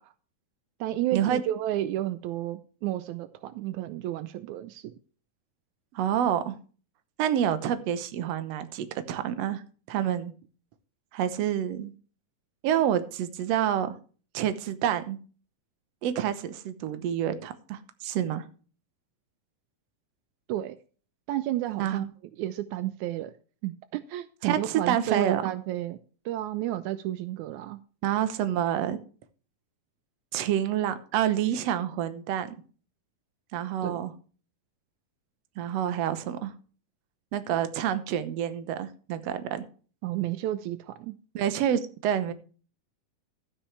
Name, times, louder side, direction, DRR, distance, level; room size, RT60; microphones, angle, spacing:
voice 1, 0.8-4.9 20.5-20.8 21.3-22.1 22.4-23.3 23.6-26.0 26.2-27.8 33.8-34.0 40.0-41.1, right 14 dB, 90° right, 13 dB, 1.6 m, -31 dB
voice 2, 5.9-6.5 7.2-9.6 9.9-10.3 11.1-11.9 12.6-13.9 14.3-15.2 16.0-18.5 21.8-22.1 24.4-25.4 28.0-29.0 30.3-32.5 33.5-34.1 35.6-36.5 37.3-39.6 41.3-42.3, right 10 dB, 70° right, 11 dB, 1.6 m, -28 dB
12.5 x 9.7 x 3.2 m, 0.39 s
omnidirectional pair, 4.0 m